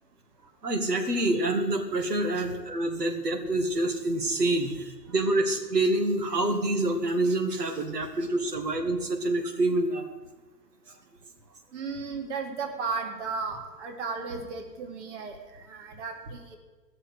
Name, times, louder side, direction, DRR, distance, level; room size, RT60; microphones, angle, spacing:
voice 1, 0.6-10.0, right 2 dB, 70° right, 4 dB, 2.2 m, -27 dB
voice 2, 11.7-16.6, right 4 dB, 45° right, 3 dB, 2.3 m, -35 dB
17.0 x 6.6 x 8.1 m, 1.2 s
figure-of-eight pair, 120°, 49 cm